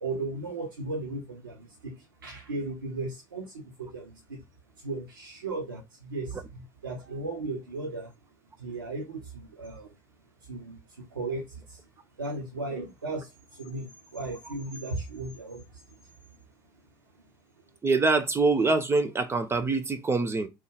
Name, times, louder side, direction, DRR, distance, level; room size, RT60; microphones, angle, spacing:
voice 1, 0.0-4.4 4.8-8.1 8.6-9.9 10.4-11.8 12.2-16.0, right 2 dB, 85° right, 0.5 m, -36 dB
voice 2, 17.8-20.5, right 3 dB, 20° right, 0.5 m, -24 dB
2.9 x 2.1 x 3.3 m
figure-of-eight pair, 60°, 11 cm